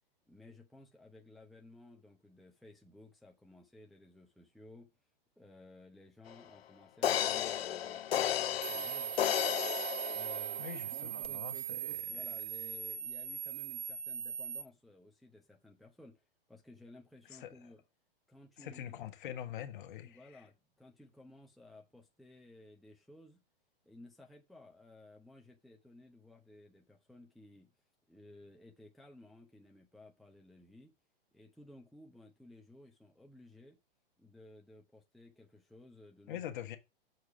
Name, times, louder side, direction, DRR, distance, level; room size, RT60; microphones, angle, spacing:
voice 1, 0.3-4.9 5.4-9.1 10.1-16.2 16.5-17.8 18.3-18.9 20.0-23.4 23.8-27.7 28.1-30.9 31.3-33.8 34.2-36.4, left 2 dB, ahead, 0.9 m, -57 dB
sound 1, 6.3-6.4 7.0-10.8 11.2-11.3, left 11 dB, 90° left, 0.5 m, -33 dB
sound 2, 8.6-14.6, right 10 dB, 30° right, 0.9 m, -40 dB
voice 2, 10.6-12.2 17.3-17.6 18.6-20.4 36.3-36.8, left 10 dB, 55° left, 1.4 m, -44 dB
6.7 x 4.7 x 5.8 m
hypercardioid pair, 130°, 29 cm